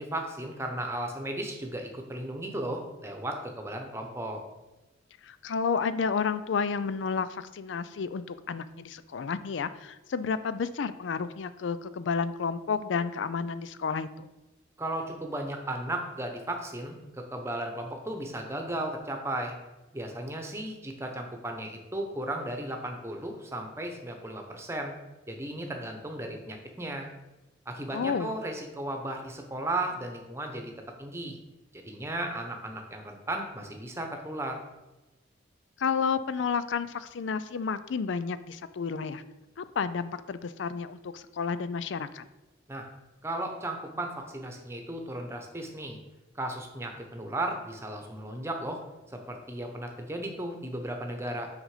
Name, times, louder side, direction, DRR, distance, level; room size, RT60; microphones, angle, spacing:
voice 1, 0.0-4.4 14.8-19.5 19.9-24.9 25.3-27.1 27.7-30.7 31.0-31.4 31.7-34.6 42.7-42.8 43.2-46.0 46.3-48.8 49.1-51.5, right 1 dB, 15° right, 3 dB, 0.9 m, -35 dB
voice 2, 5.2-14.3 27.9-28.3 35.8-39.2 39.6-42.2, left 5 dB, 85° left, 14 dB, 0.4 m, -31 dB
6.4 x 5.1 x 4.9 m, 1.1 s
head